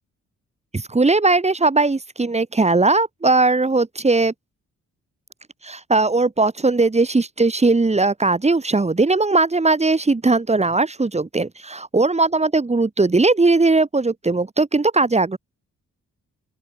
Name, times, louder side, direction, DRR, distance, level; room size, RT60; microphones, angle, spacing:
voice 1, 0.7-4.3 5.6-15.4, right 3 dB, 20° right, 1.5 m, -19 dB
open air
cardioid pair, 65°, 31 cm